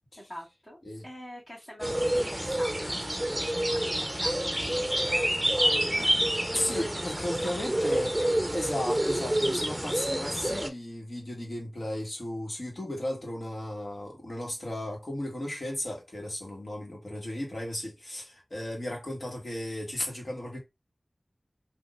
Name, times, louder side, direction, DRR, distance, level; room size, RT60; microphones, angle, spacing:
voice 1, 0.2-8.3, equal, 35° left, 1.9 m, -45 dB
sound 1, 1.8-10.7, right 1 dB, 10° right, 0.7 m, -28 dB
voice 2, 6.5-8.2 8.5-20.6, left 1 dB, 60° left, 1.7 m, -35 dB
3.8 x 2.8 x 2.6 m
wide cardioid pair, 50°, 0 cm